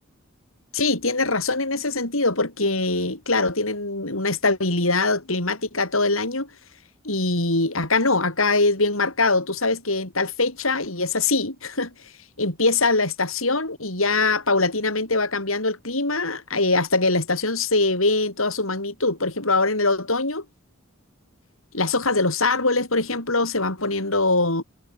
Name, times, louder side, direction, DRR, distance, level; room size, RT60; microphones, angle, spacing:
voice 1, 0.7-6.5 7.0-11.9 12.4-20.4 21.7-24.6, left 3 dB, 85° left, 7.9 m, -23 dB
head